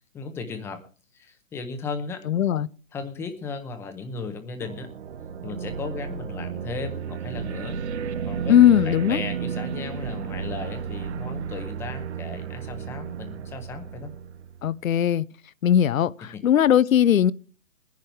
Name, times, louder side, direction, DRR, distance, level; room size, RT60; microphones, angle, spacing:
voice 1, 0.1-0.8 1.1-2.2 2.9-4.9 5.4-7.8 8.3-14.1 16.3-16.4, left 4 dB, 5° left, 0.7 m, -36 dB
voice 2, 2.3-2.7 8.5-9.2 14.6-15.2 15.6-17.3, left 10 dB, 85° left, 0.7 m, -19 dB
sound 1, 4.6-14.8, right 7 dB, 55° right, 1.0 m, -33 dB
19.5 x 10.5 x 3.4 m
hypercardioid pair, 150°, 39 cm